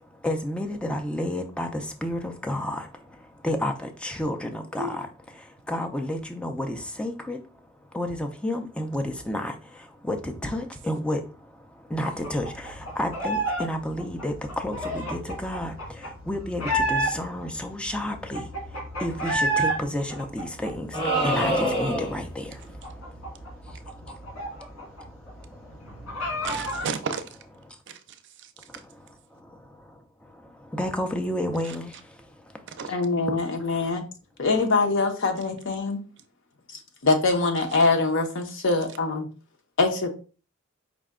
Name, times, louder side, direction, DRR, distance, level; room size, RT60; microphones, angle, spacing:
voice 1, 0.0-5.1 5.4-26.5 27.7-27.8 28.7-33.0 33.3-33.4, left 1 dB, 5° left, 0.4 m, -32 dB
sound 1, 12.0-13.7 13.9-17.4 17.9-18.0 18.1-19.8 20.1-21.8 22.1-22.2 22.5-25.0 25.3-25.4 25.7-26.9, right 1 dB, 85° left, 1.6 m, -29 dB
sound 2, 20.9-22.3, right 1 dB, 20° left, 1.5 m, -25 dB
voice 2, 26.4-27.2 27.9-28.0 28.4-28.8 31.7-31.8 32.8-32.9, right 4 dB, 60° right, 0.5 m, -33 dB
voice 3, 32.9-34.0 34.4-36.0 37.0-39.3 39.8-40.1, left 3 dB, 65° left, 0.7 m, -23 dB
4.9 x 2.2 x 3.6 m
head